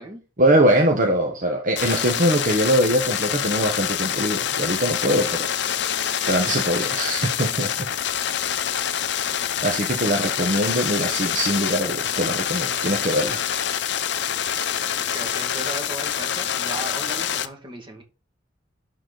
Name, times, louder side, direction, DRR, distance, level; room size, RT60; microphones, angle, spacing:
voice 1, 0.4-5.5 6.3-7.9 9.6-13.4, right 1 dB, 45° right, 1.1 m, -22 dB
sound 1, 1.8-17.5, left 9 dB, 65° left, 0.7 m, -26 dB
voice 2, 15.1-18.0, right 2 dB, 25° right, 2.0 m, -36 dB
11.5 x 4.2 x 4.0 m
head